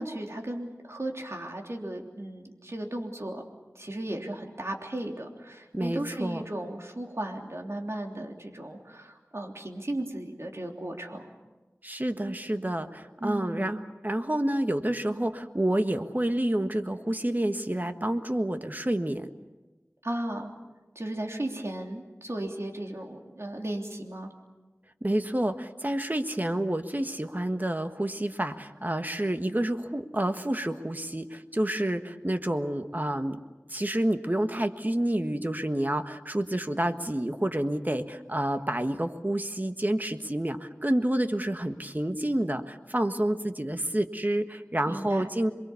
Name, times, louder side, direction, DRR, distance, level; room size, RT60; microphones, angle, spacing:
voice 1, 0.0-3.4 3.7-11.3 13.2-13.7 20.0-20.5 20.9-24.3 44.9-45.2, right 1 dB, 60° right, 1 dB, 3.3 m, -35 dB
voice 2, 5.7-6.4 11.8-19.3 25.0-33.4 33.7-45.5, right 1 dB, 35° right, 7 dB, 1.5 m, -29 dB
28.0 x 23.0 x 7.1 m, 1.2 s
wide cardioid pair, 40°, 5 cm